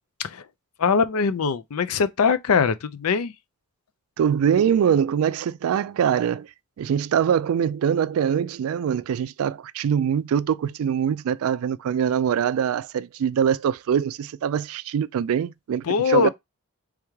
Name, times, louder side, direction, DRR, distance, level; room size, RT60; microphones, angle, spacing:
voice 1, 0.8-3.3 15.8-16.3, left 6 dB, 85° left, 0.5 m, -22 dB
voice 2, 4.2-6.5 6.8-16.3, right 8 dB, 75° right, 0.3 m, -23 dB
3.5 x 3.4 x 3.1 m
head